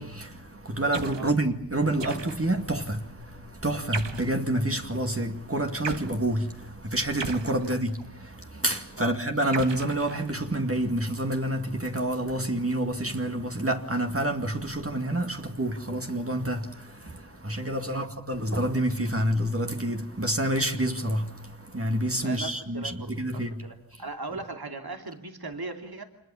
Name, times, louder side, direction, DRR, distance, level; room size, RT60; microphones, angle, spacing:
voice 1, 0.0-23.7, right 1 dB, 30° right, 2.3 m, -28 dB
sound 1, 0.9-1.3 2.0-2.6 3.9-4.4 5.8-6.1 7.2-8.1 9.5-10.6, right 5 dB, 85° right, 1.4 m, -36 dB
voice 2, 22.2-26.0, right 3 dB, 60° right, 2.9 m, -38 dB
27.0 x 21.0 x 7.2 m
wide cardioid pair, 55°, 42 cm